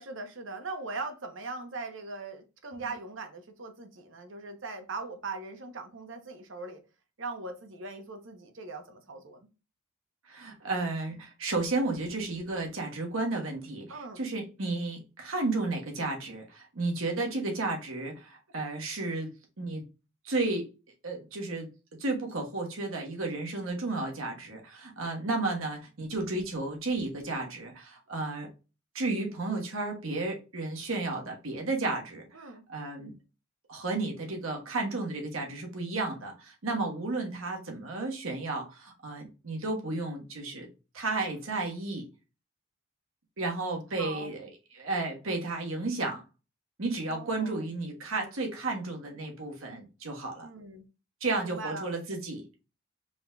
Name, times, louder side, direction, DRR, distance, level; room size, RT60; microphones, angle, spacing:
voice 1, 0.0-6.8 7.2-9.5 13.9-14.3 32.3-32.6 44.0-44.3 47.1-47.7 50.4-50.8 51.4-51.9, right 3 dB, 65° right, 0.8 m, -40 dB
voice 2, 10.3-19.3 19.6-19.8 20.2-20.7 21.0-21.7 22.0-28.5 28.9-32.2 32.7-33.1 33.7-40.7 40.9-42.1 43.4-46.2 46.8-50.5 51.2-52.5, right 2 dB, 80° right, 1.3 m, -33 dB
4.9 x 3.8 x 2.3 m
head